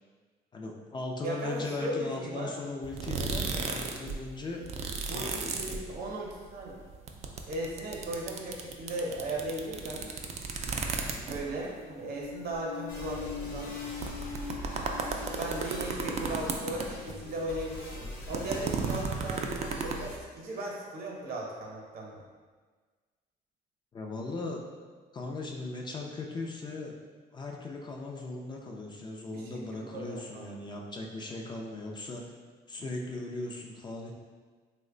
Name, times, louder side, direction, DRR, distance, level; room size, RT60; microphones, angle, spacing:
voice 1, 0.5-4.6 5.1-5.8 11.0-11.3 23.9-24.6 25.1-26.9 27.3-32.3 32.7-34.1, left 2 dB, 25° left, 0 dB, 0.4 m, -38 dB
voice 2, 1.2-2.5 5.1-6.8 7.5-10.1 11.3-13.7 15.4-22.2 29.3-30.4, right 1 dB, 60° right, -1 dB, 0.8 m, -37 dB
sound 1, 2.8-4.1 4.4-6.3 6.6-11.6 12.2-12.3 12.5-12.6 13.3-13.4 13.8-17.2 17.5-19.9, right 5 dB, 40° right, 0.4 m, -34 dB
sound 2, 12.0-18.4, left 6 dB, 50° left, 0.8 m, -44 dB
sound 3, 12.9-20.2, left 1 dB, 85° left, 0.9 m, -42 dB
3.1 x 2.1 x 3.7 m, 1.5 s
cardioid pair, 110°, 17 cm